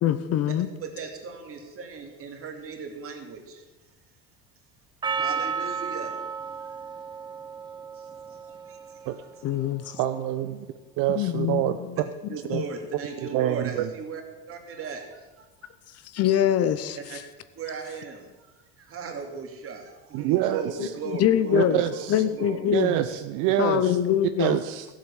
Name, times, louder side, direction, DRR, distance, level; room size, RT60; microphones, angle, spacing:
voice 1, 0.0-0.7 9.4-10.0 11.1-11.7 12.5-12.6 16.1-17.0 20.8-21.8 22.1-23.0 23.6-24.6, left 10 dB, 45° left, 13 dB, 0.8 m, -24 dB
voice 2, 0.8-3.6 5.1-6.2 6.6-6.7 7.9-9.1 12.3-14.2 14.5-15.7 17.0-17.2 17.6-22.8, right 5 dB, 40° right, 3 dB, 2.6 m, -37 dB
Percussion, 5.0-9.5, right 6 dB, 15° right, 0.5 m, -33 dB
voice 3, 9.8-10.7 11.0-11.8 12.5-12.6 13.3-13.9 20.1-20.9 21.5-22.2 22.7-24.0 24.4-24.9, right 13 dB, 60° right, 10 dB, 0.7 m, -26 dB
13.0 x 7.7 x 7.1 m, 1.2 s
supercardioid pair, 110°, 34 cm